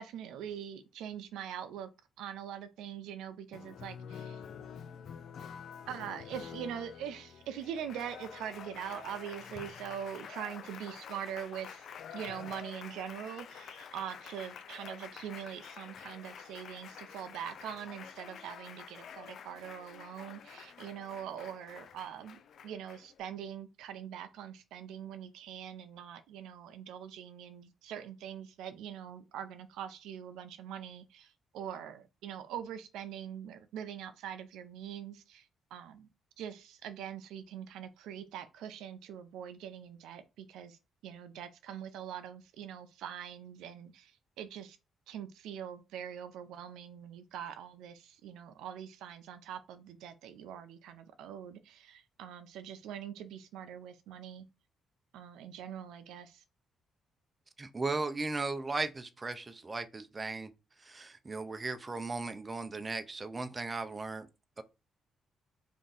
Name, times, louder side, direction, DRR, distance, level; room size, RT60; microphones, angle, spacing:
voice 1, 0.0-1.9 2.2-4.4 5.9-36.1 36.4-40.8 41.0-44.8 45.1-54.4 55.1-56.4, right 9 dB, 90° right, 0.4 m, -43 dB
Applause, 3.5-23.2, left 7 dB, 65° left, 0.4 m, -48 dB
voice 2, 57.6-60.5 60.8-64.3 64.6-64.7, right 3 dB, 25° right, 0.5 m, -36 dB
3.5 x 2.6 x 3.9 m
cardioid pair, 90°, 0 cm